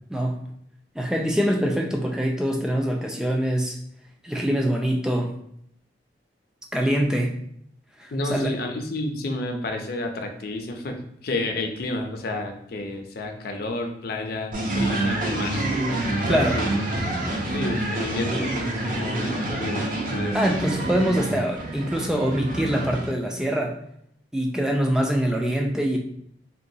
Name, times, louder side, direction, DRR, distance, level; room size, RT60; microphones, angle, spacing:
voice 1, 0.1-0.4 1.0-3.8 4.2-5.3 6.7-7.4 8.0-8.5 16.3-16.6 20.3-23.8 24.3-26.0, equal, 5° right, 1 dB, 0.3 m, -24 dB
voice 2, 8.1-16.7 17.5-19.8 20.1-20.4, left 2 dB, 55° left, 4 dB, 0.5 m, -31 dB
sound 1, 14.5-23.1, right 1 dB, 45° right, 0.6 m, -27 dB
3.8 x 2.2 x 2.7 m, 0.71 s
head